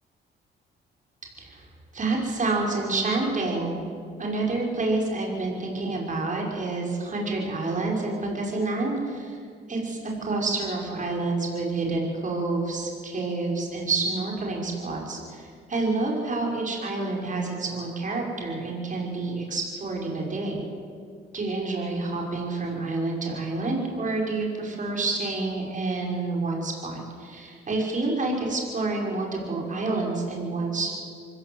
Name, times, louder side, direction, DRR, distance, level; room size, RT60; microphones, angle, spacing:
voice 1, 1.9-3.8 4.2-9.4 9.7-20.6 21.3-31.2, right 3 dB, 40° right, -1 dB, 5.7 m, -28 dB
24.5 x 16.0 x 8.0 m, 2.2 s
cardioid pair, 90°, 20 cm